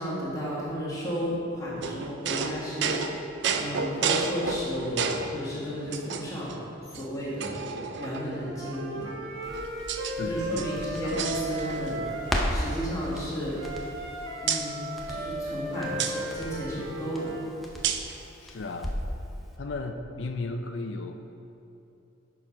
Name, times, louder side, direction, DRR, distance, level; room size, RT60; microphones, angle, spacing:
voice 1, 0.0-2.9 3.5-6.6 6.9-7.5 8.0-9.1 10.2-12.0 12.5-13.6 14.4-14.8 15.1-17.3, equal, 15° left, -8 dB, 1.8 m, -33 dB
sound 1, 1.8-5.4 5.9-6.5 6.9-7.0 7.4-8.4 9.2-10.2 10.4-12.0 12.3-12.5 12.8-14.1 14.5-14.7 16.0-16.2 17.8-18.2, right 5 dB, 60° right, 0.4 m, -31 dB
Wind instrument woodwind instrument, 8.4-12.6 13.6-17.5, right 1 dB, 85° right, 1.2 m, -36 dB
Crackle, 9.4-19.2 19.5-19.6, equal, ahead, 0.6 m, -37 dB
voice 2, 10.2-10.7 11.0-11.1 18.4-19.0 19.6-21.1, left 3 dB, 65° left, 5 dB, 0.5 m, -35 dB
6.9 x 5.9 x 4.9 m, 2.8 s
head